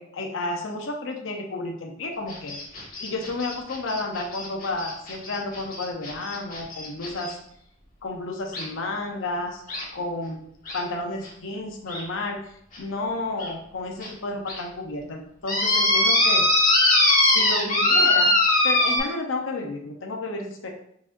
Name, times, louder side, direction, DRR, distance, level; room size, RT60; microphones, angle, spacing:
voice 1, 0.0-7.4 8.0-9.6 9.9-10.4 10.7-12.4 12.8-16.5 17.2-18.4 18.6-20.7, left 2 dB, 80° left, 1 dB, 0.7 m, -31 dB
sound 1, 2.3-7.3 8.5-8.6 9.7-9.8 10.7-10.8 11.2-11.3 11.9-12.0 12.7-12.8 13.4-13.5 14.0-14.1 14.5-14.6 15.5-19.0, left 2 dB, 45° left, 1.6 m, -21 dB
4.7 x 4.2 x 2.5 m, 0.71 s
head